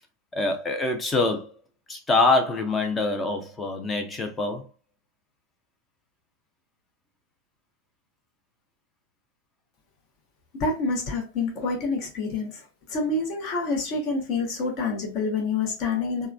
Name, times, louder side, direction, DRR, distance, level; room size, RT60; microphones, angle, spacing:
voice 1, 0.3-1.5 1.9-4.7, left 3 dB, 15° left, 0.6 m, -25 dB
voice 2, 10.5-12.6 12.9-16.3, left 3 dB, 40° left, 0.9 m, -27 dB
3.4 x 2.2 x 2.3 m
figure-of-eight pair, 90°, 0 cm